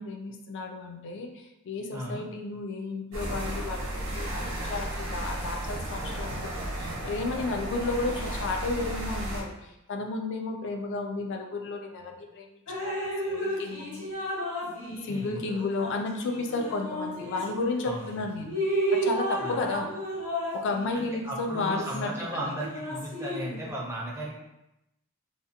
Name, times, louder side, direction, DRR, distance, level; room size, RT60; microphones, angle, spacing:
voice 1, 0.0-14.1 15.0-18.5 18.9-19.9 20.5-22.5, left 3 dB, 55° left, 4 dB, 0.3 m, -33 dB
voice 2, 1.9-2.2 15.1-15.4 17.8-18.3 19.4-19.8 20.9-24.3, right 1 dB, 10° right, -3 dB, 0.4 m, -36 dB
sound 1, 3.1-9.4, right 1 dB, 60° right, 0.8 m, -34 dB
Drip, 12.7-17.9 18.3-23.7, right 1 dB, 85° left, 1.0 m, -33 dB
2.4 x 2.0 x 2.7 m, 0.91 s
head